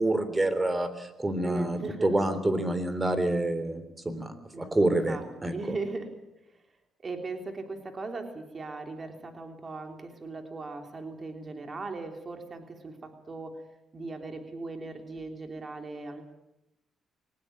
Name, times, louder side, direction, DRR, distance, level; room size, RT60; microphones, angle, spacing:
voice 1, 0.0-5.8, right 1 dB, 20° right, 12 dB, 3.5 m, -28 dB
voice 2, 1.4-2.1 4.5-6.1 7.0-13.6 13.9-16.2, right 3 dB, 35° right, 5 dB, 3.2 m, -38 dB
22.5 x 19.5 x 8.8 m, 0.90 s
cardioid pair, 90°, 0 cm